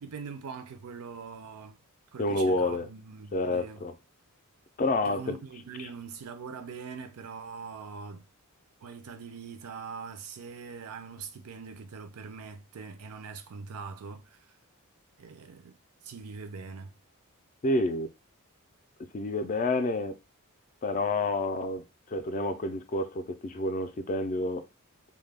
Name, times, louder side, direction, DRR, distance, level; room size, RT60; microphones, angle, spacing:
voice 1, 0.0-1.8 2.1-3.8 5.0-8.3 8.8-14.5 15.2-15.8 16.0-16.9, right 5 dB, 80° right, 0.4 m, -42 dB
voice 2, 2.2-2.9 3.3-3.9 4.8-5.4 5.8-5.9 17.6-18.1 19.1-20.2 20.8-24.7, left 2 dB, 35° left, 0.4 m, -29 dB
2.2 x 2.1 x 3.3 m
head